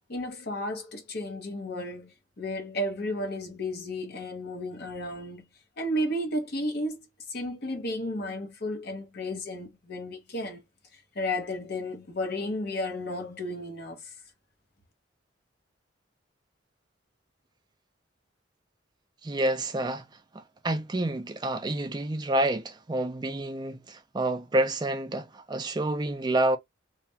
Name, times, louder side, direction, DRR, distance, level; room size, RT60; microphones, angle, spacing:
voice 1, 0.1-5.5 5.8-10.6 10.9-14.1, left 1 dB, 55° left, 0.8 m, -33 dB
voice 2, 19.2-20.1 20.3-26.6, right 1 dB, 20° right, 0.4 m, -28 dB
2.4 x 2.2 x 2.7 m
head